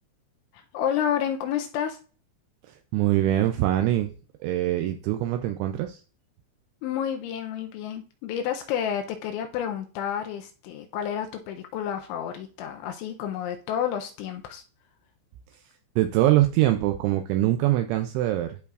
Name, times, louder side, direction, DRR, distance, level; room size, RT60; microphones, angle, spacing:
voice 1, 0.7-2.0 6.8-14.6, left 9 dB, 80° left, 5 dB, 2.8 m, -30 dB
voice 2, 2.6-4.1 4.4-6.0 16.0-18.6, right 14 dB, 90° right, 6 dB, 2.6 m, -23 dB
13.5 x 4.6 x 2.4 m, 0.38 s
omnidirectional pair, 6.0 m